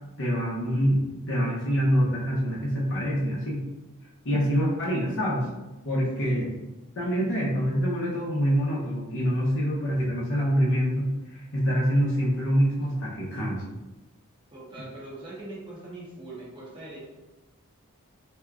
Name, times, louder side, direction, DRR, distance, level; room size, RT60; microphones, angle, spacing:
voice 1, 0.2-1.0 1.3-3.6 4.2-5.4 5.8-6.5 7.0-13.6, equal, 60° left, -5 dB, 0.8 m, -25 dB
voice 2, 14.5-17.1, right 2 dB, 20° right, -6 dB, 0.7 m, -42 dB
3.4 x 2.8 x 2.3 m, 1.1 s
head